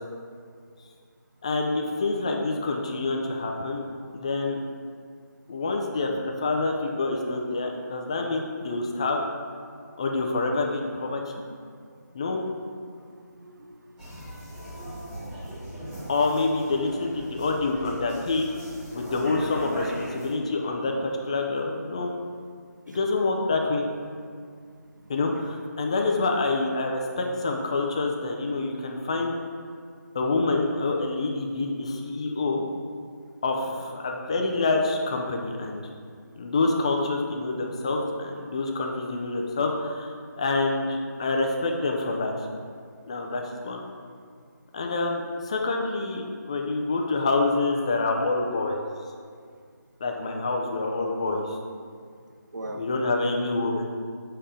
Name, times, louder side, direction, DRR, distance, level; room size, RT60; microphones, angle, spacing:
voice 1, 1.4-3.8 4.1-4.6 5.5-9.2 10.0-11.2 12.1-12.4 16.1-18.5 18.9-22.1 22.9-23.9 25.1-29.3 30.1-32.6 33.4-35.8 36.4-42.3 43.1-43.8 44.7-48.8 50.0-51.6 52.7-53.9, left 3 dB, 20° left, 2 dB, 0.5 m, -27 dB
voice 2, 13.1-14.5 22.9-23.0 24.5-24.6 37.8-37.9 52.5-52.8, right 1 dB, 80° right, 3 dB, 1.0 m, -42 dB
sound 1, 14.0-20.3, equal, 5° right, 0.9 m, -39 dB
7.3 x 4.3 x 5.0 m, 2.1 s
figure-of-eight pair, 170°, 10 cm